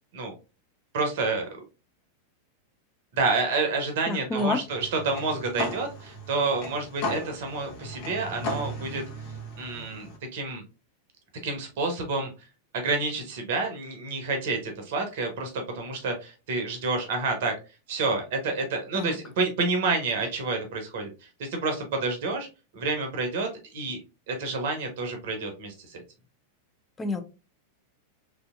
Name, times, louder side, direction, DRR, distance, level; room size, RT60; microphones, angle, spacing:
voice 1, 0.9-1.5 3.1-9.0 9.6-10.6 11.4-12.3 12.7-17.6 17.9-22.5 22.7-24.0 24.3-26.0, right 3 dB, 55° right, 5 dB, 0.7 m, -29 dB
voice 2, 4.1-4.6 18.9-19.2 27.0-27.2, left 2 dB, 15° left, 6 dB, 0.5 m, -28 dB
sound 1, 4.7-10.2, left 1 dB, 50° left, 1.0 m, -36 dB
3.2 x 2.7 x 2.3 m, 0.30 s
figure-of-eight pair, 90°, 0 cm